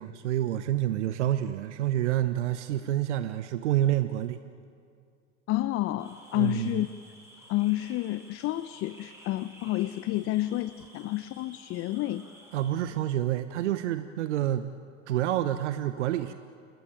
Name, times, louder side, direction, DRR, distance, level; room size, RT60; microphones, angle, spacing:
voice 1, 0.0-4.4 6.3-6.7 12.5-14.7 15.1-16.3, right 12 dB, 65° right, 11 dB, 1.1 m, -28 dB
voice 2, 5.5-6.9 7.5-12.2, left 16 dB, 35° left, 14 dB, 0.8 m, -29 dB
sound 1, 6.0-12.7, equal, 5° right, 7.8 m, -53 dB
28.5 x 21.0 x 9.0 m, 2.3 s
figure-of-eight pair, 85°, 37 cm